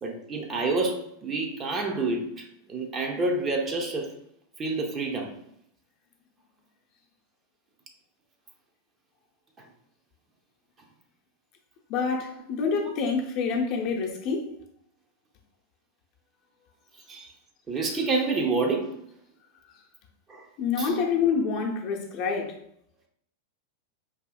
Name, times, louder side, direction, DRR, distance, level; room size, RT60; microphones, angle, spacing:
voice 1, 0.0-4.1 4.6-5.4 17.1-17.3 17.7-19.0 20.3-20.5 20.8-21.0, right 3 dB, 25° right, 0.6 m, -28 dB
voice 2, 11.9-14.5 20.6-22.6, left 5 dB, 40° left, 0.7 m, -27 dB
4.8 x 2.7 x 2.3 m
figure-of-eight pair, 90°, 0 cm